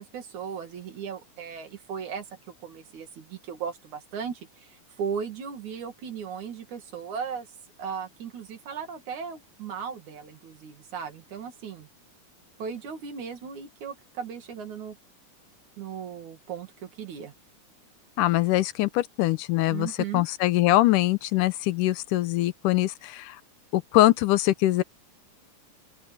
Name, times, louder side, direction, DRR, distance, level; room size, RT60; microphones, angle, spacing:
voice 1, 0.0-7.5 7.8-11.9 12.6-15.0 15.8-17.3 19.7-20.3, right 7 dB, 70° right, 3.6 m, -37 dB
voice 2, 18.2-23.4 23.7-24.8, left 16 dB, 90° left, 2.4 m, -23 dB
open air
omnidirectional pair, 3.6 m